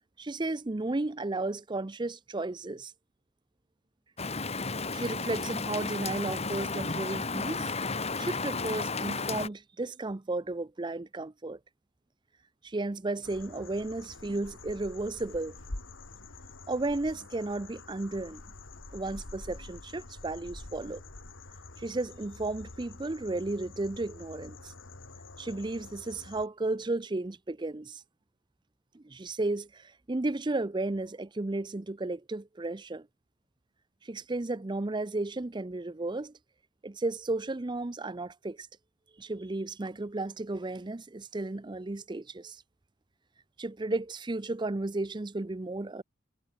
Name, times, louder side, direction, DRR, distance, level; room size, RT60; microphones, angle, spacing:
voice 1, 0.2-2.9 4.9-7.7 8.2-11.6 12.6-15.6 16.7-18.4 18.9-21.0 21.8-24.7 25.4-28.0 28.9-33.1 34.0-36.3 36.8-38.7 39.2-42.6 43.6-46.0, right 2 dB, 25° right, 0.6 m, -34 dB
Rain, 4.2-9.5, left 4 dB, 30° left, 2.4 m, -33 dB
sound 1, 13.2-26.5, left 2 dB, 85° left, 2.4 m, -47 dB
head